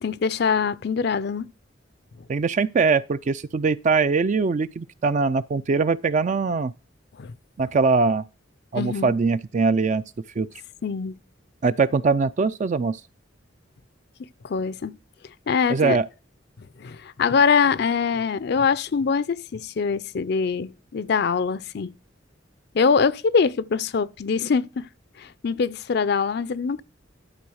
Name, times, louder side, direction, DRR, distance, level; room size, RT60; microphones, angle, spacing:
voice 1, 0.0-1.4 7.2-7.3 8.7-9.1 10.8-11.1 14.4-14.9 15.5-16.0 16.8-21.9 22.7-24.8 25.2-26.8, left 5 dB, 60° left, 0.5 m, -23 dB
voice 2, 2.3-6.7 7.6-8.2 8.7-10.0 10.4-10.5 11.6-13.0 15.7-16.1, right 4 dB, 40° right, 0.4 m, -22 dB
11.5 x 4.0 x 6.3 m
head